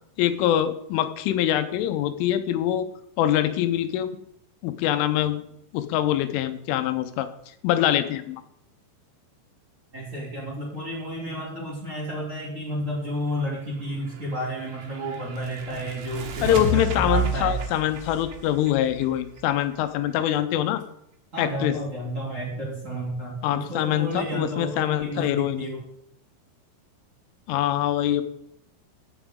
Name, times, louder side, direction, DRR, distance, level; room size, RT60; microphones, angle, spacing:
voice 1, 0.2-2.9 3.2-4.2 4.6-5.4 5.7-7.3 7.6-8.4 16.4-20.8 21.4-21.8 23.4-25.7 27.5-28.2, left 11 dB, 85° left, 10 dB, 3.2 m, -24 dB
voice 2, 9.9-17.6 21.3-25.8, equal, 25° right, -5 dB, 1.9 m, -31 dB
sound 1, 14.0-19.7, right 2 dB, 70° right, 3.2 m, -31 dB
16.0 x 7.2 x 3.7 m, 0.73 s
omnidirectional pair, 5.6 m